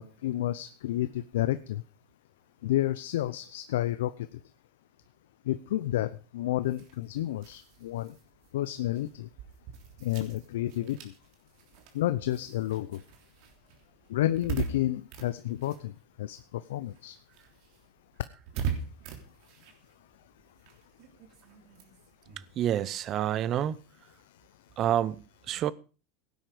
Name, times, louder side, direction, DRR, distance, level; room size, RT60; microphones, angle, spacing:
voice 1, 0.0-1.8 2.6-4.3 5.5-8.1 8.5-9.3 10.0-11.1 11.9-13.0 14.1-15.9 16.2-17.2, left 14 dB, 85° left, 0.7 m, -30 dB
sound 1, 6.6-16.5 16.8-23.8, right 6 dB, 60° right, 3.4 m, -42 dB
voice 2, 22.6-23.8 24.8-25.7, right 11 dB, 40° right, 0.8 m, -28 dB
17.0 x 9.4 x 5.0 m
supercardioid pair, 120°, 0 cm